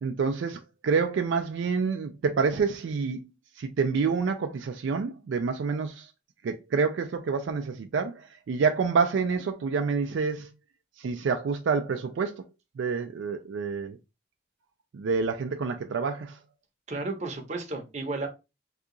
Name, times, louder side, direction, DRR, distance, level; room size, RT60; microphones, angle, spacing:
voice 1, 0.0-3.2 3.6-6.1 6.4-10.5 11.0-12.4 12.8-14.0 14.9-16.4, right 5 dB, 75° right, 0.3 m, -28 dB
voice 2, 16.9-18.3, right 3 dB, 40° right, 0.7 m, -33 dB
2.8 x 2.3 x 3.7 m
head